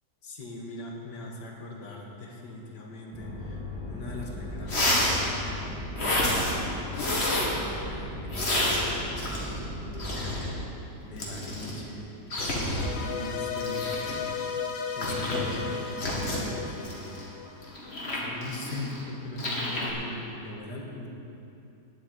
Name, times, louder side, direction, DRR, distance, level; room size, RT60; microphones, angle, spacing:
voice 1, 0.2-3.6 3.9-6.9 7.5-10.7 11.0-12.1 12.4-14.0 15.0-15.8 16.4-17.2 18.1-21.1, left 2 dB, 75° left, 0 dB, 2.1 m, -41 dB
sound 1, 3.1-10.5, left 1 dB, 5° right, 2.2 m, -38 dB
sound 2, 4.2-4.3 4.6-5.2 6.0-6.5 6.9-7.5 8.3-9.6 9.9-10.5 11.2-11.8 12.3-12.9 13.6-14.1 15.0-15.4 16.0-16.4 16.8-19.0 19.4-19.9, left 1 dB, 35° left, 2.3 m, -29 dB
sound 3, 12.7-17.9, left 6 dB, 55° left, 1.1 m, -35 dB
9.8 x 8.3 x 9.3 m, 2.8 s
omnidirectional pair, 1.9 m